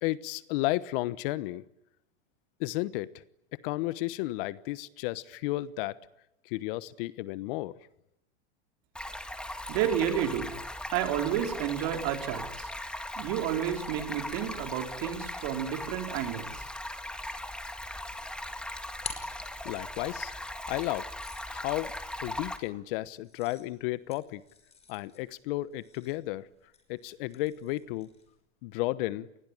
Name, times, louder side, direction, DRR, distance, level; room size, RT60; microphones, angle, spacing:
voice 1, 0.0-1.7 2.6-3.1 3.5-6.0 6.4-7.8 19.6-20.3 20.7-21.1 21.5-21.9 22.2-24.4 24.9-26.5 26.9-28.1 28.6-29.3, left 18 dB, 50° left, 1.1 m, -33 dB
Stream, 9.0-22.6, left 1 dB, 5° left, 2.1 m, -39 dB
voice 2, 9.7-10.5 10.9-12.7 13.2-16.7, right 10 dB, 50° right, 4.4 m, -31 dB
sound 1, 18.4-20.1 20.8-28.4, left 7 dB, 20° left, 5.7 m, -49 dB
28.0 x 20.5 x 9.9 m
hypercardioid pair, 130°, 34 cm